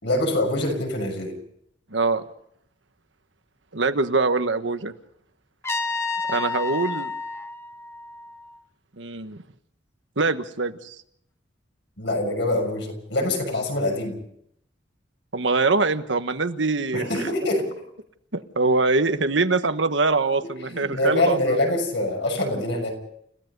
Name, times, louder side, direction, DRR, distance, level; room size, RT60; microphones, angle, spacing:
voice 1, 0.0-1.4 12.0-14.2 16.9-17.7 20.4-22.9, left 1 dB, 70° left, 3 dB, 6.6 m, -25 dB
voice 2, 1.9-2.2 3.7-4.9 6.3-7.1 9.0-9.4 10.2-10.9 15.3-17.1 18.5-21.6, right 3 dB, 80° right, 9 dB, 1.3 m, -23 dB
Trumpet, 5.6-8.6, left 3 dB, 15° left, 1.2 m, -30 dB
30.0 x 16.5 x 5.4 m, 0.71 s
head